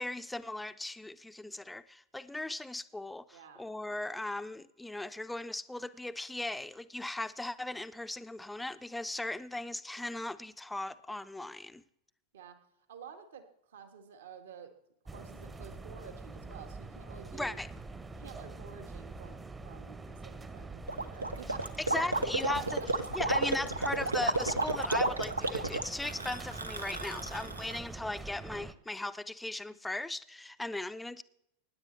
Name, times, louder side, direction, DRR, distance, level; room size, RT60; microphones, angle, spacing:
voice 1, 0.0-11.8 17.3-17.7 21.8-22.8 23.1-31.2, left 2 dB, 5° left, 0.6 m, -38 dB
voice 2, 3.3-3.7 12.3-12.6 12.9-14.7 15.0-17.6 18.1-22.3 22.6-22.9, right 6 dB, 60° right, 1.8 m, -51 dB
sound 1, 15.1-28.7, right 3 dB, 15° right, 0.9 m, -45 dB
Gurgling, 20.9-27.8, right 2 dB, 80° right, 0.9 m, -32 dB
24.5 x 10.5 x 3.3 m
figure-of-eight pair, 90°, 0 cm